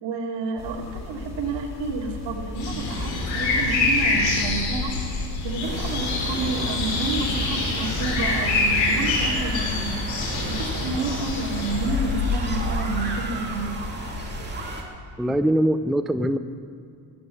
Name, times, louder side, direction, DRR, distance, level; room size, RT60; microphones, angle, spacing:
voice 1, 0.0-5.1 5.4-9.9 10.5-13.7, right 3 dB, 75° right, 0 dB, 2.8 m, -30 dB
sound 1, 0.6-14.6, left 3 dB, 35° left, 2.3 m, -37 dB
sound 2, 2.5-12.7, left 3 dB, 85° left, 4.4 m, -26 dB
sound 3, 5.6-14.8, right 2 dB, 25° right, 2.3 m, -34 dB
voice 2, 15.2-16.4, right 1 dB, ahead, 10 dB, 0.3 m, -22 dB
16.0 x 9.6 x 7.3 m, 2.4 s
cardioid pair, 130°, 44 cm